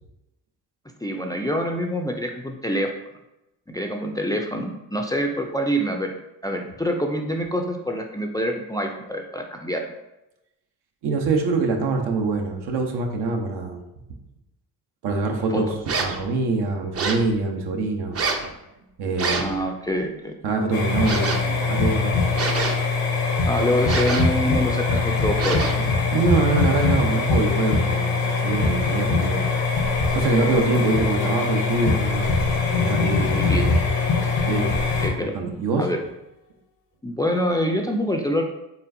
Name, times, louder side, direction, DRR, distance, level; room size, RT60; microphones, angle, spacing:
voice 1, 1.0-2.9 3.7-6.1 6.4-9.8 15.5-15.6 19.4-20.3 23.4-25.6 30.4-30.5 33.3-33.7 35.0-35.3 35.8-36.0 37.0-38.4, equal, 10° left, 2 dB, 0.4 m, -26 dB
voice 2, 11.0-13.8 15.0-15.7 16.0-18.2 19.0-19.5 20.4-22.2 24.4-24.6 25.8-29.4 30.1-32.4 32.7-33.5 34.5-34.7 35.3-35.9, right 3 dB, 70° right, 2 dB, 0.9 m, -24 dB
sound 1, 15.9-16.2 16.9-17.3 18.1-18.5 19.2-19.6 21.0-21.5 22.3-23.0 23.8-24.4 25.4-25.9, right 4 dB, 35° right, 0.6 m, -26 dB
sound 2, 20.7-35.1, left 4 dB, 90° left, 1.1 m, -22 dB
sound 3, 30.4-36.2, left 8 dB, 65° left, 0.8 m, -39 dB
4.3 x 3.4 x 2.6 m, 0.92 s
supercardioid pair, 65°, 42 cm